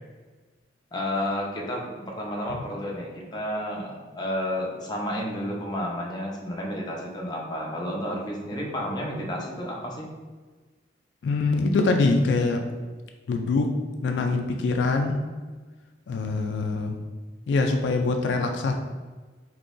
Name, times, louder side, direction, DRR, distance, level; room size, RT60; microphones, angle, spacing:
voice 1, 0.9-10.1, equal, 20° left, -2 dB, 0.5 m, -31 dB
voice 2, 11.2-12.6 13.3-13.7 14.0-15.2 16.1-17.0 17.5-18.7, left 3 dB, 70° left, 4 dB, 0.3 m, -24 dB
3.7 x 2.8 x 2.5 m, 1.3 s
head